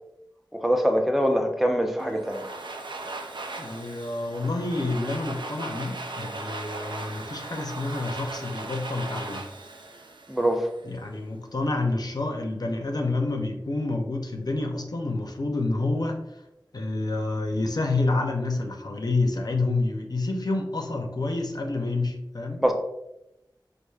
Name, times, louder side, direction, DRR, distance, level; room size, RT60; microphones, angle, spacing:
voice 1, 0.5-2.5 10.3-10.7 22.6-22.7, equal, ahead, 4 dB, 0.5 m, -23 dB
Domestic sounds home sounds, 2.0-10.9, right 2 dB, 75° right, 0.4 m, -38 dB
voice 2, 3.6-9.4 10.8-16.2 16.7-22.6, left 2 dB, 55° left, 2 dB, 0.5 m, -28 dB
4.6 x 2.5 x 2.3 m, 0.88 s
wide cardioid pair, 55°, 8 cm